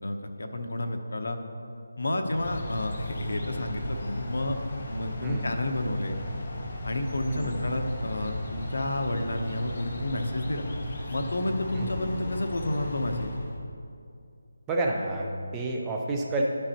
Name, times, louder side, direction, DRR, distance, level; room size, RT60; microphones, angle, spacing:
voice 1, 0.0-1.4 2.0-4.6 4.9-6.2 6.8-10.7 11.1-13.3, left 1 dB, 75° left, 5 dB, 0.8 m, -30 dB
sound 1, 2.2-13.6, left 1 dB, 40° left, 0.9 m, -36 dB
voice 2, 7.3-7.6 11.7-11.9 14.7-16.4, right 2 dB, 10° right, -1 dB, 0.5 m, -30 dB
12.0 x 5.3 x 2.9 m, 2.4 s
figure-of-eight pair, 175°, 0 cm